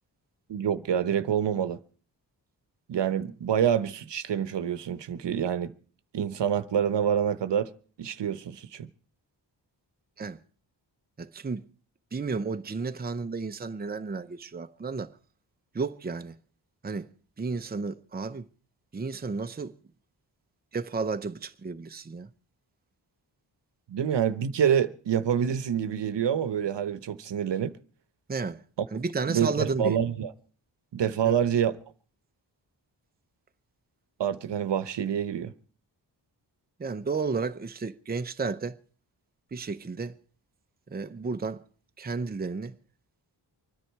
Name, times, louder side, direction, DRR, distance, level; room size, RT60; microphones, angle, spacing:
voice 1, 0.5-1.8 2.9-5.7 6.1-7.7 8.0-8.9 23.9-27.7 29.3-30.3 30.9-31.8 34.2-35.5, right 8 dB, 75° right, 0.9 m, -27 dB
voice 2, 11.2-11.6 12.1-15.2 15.7-16.4 16.8-17.1 17.4-18.5 18.9-19.7 20.7-22.3 28.3-28.6 28.9-30.0 31.2-31.4 36.8-38.8 39.5-40.1 40.9-41.6 42.0-42.8, right 4 dB, 20° right, 0.7 m, -32 dB
24.5 x 10.0 x 4.6 m
wide cardioid pair, 100°, 42 cm